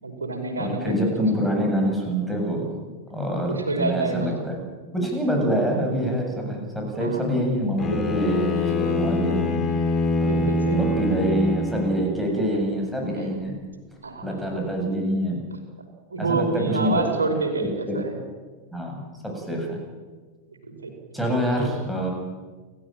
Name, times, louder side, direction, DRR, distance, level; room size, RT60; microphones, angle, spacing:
voice 1, 0.0-0.9 3.5-4.3 7.0-7.2 7.9-8.0 8.8-9.6 10.2-10.8 12.5-12.6 14.0-14.4 16.1-18.2 20.6-20.9 21.5-21.7, right 3 dB, 75° right, 2 dB, 5.2 m, -28 dB
voice 2, 0.6-2.8 3.1-4.6 4.9-9.6 10.2-13.6 14.2-15.4 16.2-17.1 17.9-18.0 18.7-19.8 21.1-22.1, equal, ahead, 0 dB, 7.6 m, -25 dB
Bowed string instrument, 7.8-12.2, left 3 dB, 20° left, 3.5 m, -25 dB
29.0 x 14.0 x 9.1 m, 1.3 s
figure-of-eight pair, 90°, 0 cm